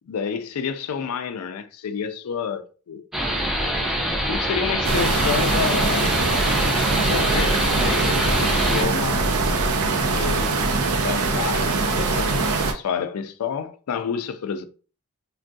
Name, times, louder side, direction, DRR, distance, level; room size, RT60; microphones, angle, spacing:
voice 1, 0.1-3.0 4.3-6.1 6.9-9.3 10.0-10.6 11.0-12.5 12.7-14.6, left 6 dB, 85° left, 0.4 m, -29 dB
sound 1, 3.1-8.8, equal, ahead, 0.5 m, -25 dB
sound 2, 4.8-12.7, right 3 dB, 80° right, 0.5 m, -22 dB
sound 3, 6.1-12.6, left 1 dB, 60° right, 0.9 m, -37 dB
3.4 x 2.2 x 2.6 m
head